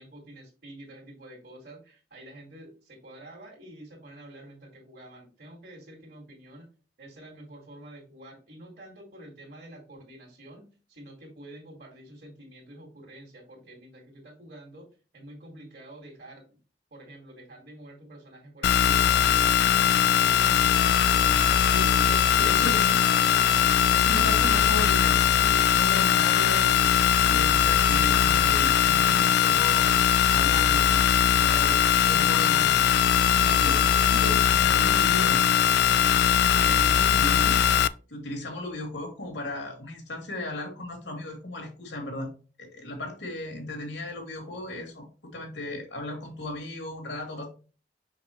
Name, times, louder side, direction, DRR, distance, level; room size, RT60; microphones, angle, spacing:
voice 1, 0.0-6.7 7.0-16.5 16.9-19.1 19.7-19.9 20.2-22.1 22.4-23.5 33.9-34.3, right 1 dB, 55° right, -2 dB, 2.3 m, -48 dB
sound 1, 18.6-37.9, left 9 dB, 65° left, 0.3 m, -21 dB
voice 2, 21.7-23.0 23.9-29.9 30.3-32.8 33.3-35.4 36.4-37.6 38.1-42.3 42.6-45.0 45.3-47.5, left 1 dB, 80° left, 2 dB, 3.0 m, -36 dB
5.9 x 5.9 x 3.1 m, 0.35 s
head